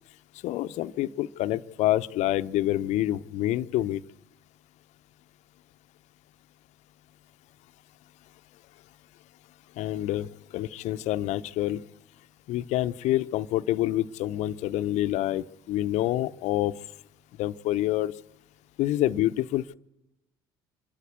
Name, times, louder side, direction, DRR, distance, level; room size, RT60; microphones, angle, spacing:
voice 1, 0.4-4.0 9.8-10.3 10.5-11.8 12.5-16.7 17.4-18.1 18.8-19.7, left 14 dB, 65° left, 13 dB, 0.7 m, -27 dB
25.0 x 12.5 x 8.2 m, 0.91 s
hypercardioid pair, 60°, 13 cm